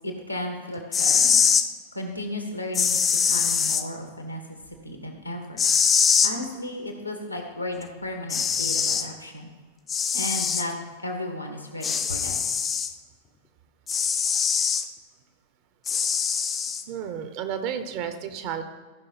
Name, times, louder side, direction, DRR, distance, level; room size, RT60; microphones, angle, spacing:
voice 1, 0.0-1.4 1.9-3.0 3.2-4.6 4.8-5.6 6.2-9.5 10.1-10.7 11.0-12.4, left 1 dB, 90° left, 3 dB, 1.6 m, -34 dB
sound 1, 0.8-1.7 2.7-3.8 5.6-6.3 7.8-7.9 8.3-9.1 9.9-10.7 11.8-12.9 13.9-14.8 15.9-16.8, left 6 dB, 20° left, 0.7 m, -23 dB
voice 2, 16.9-18.6, right 8 dB, 45° right, 8 dB, 1.1 m, -32 dB
14.5 x 5.6 x 4.3 m, 1.4 s
figure-of-eight pair, 90°, 0 cm